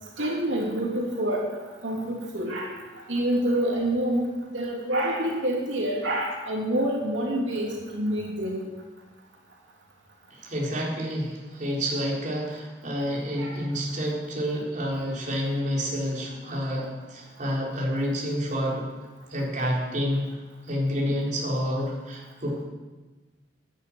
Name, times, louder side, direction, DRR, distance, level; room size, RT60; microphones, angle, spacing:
voice 1, 0.2-1.4 1.8-2.7 3.1-8.6 13.4-13.5, right 1 dB, 90° right, -2 dB, 3.0 m, -27 dB
voice 2, 10.3-18.8 19.3-20.3 20.7-22.6, equal, 45° right, -4 dB, 4.5 m, -29 dB
12.5 x 10.5 x 9.2 m, 1.2 s
head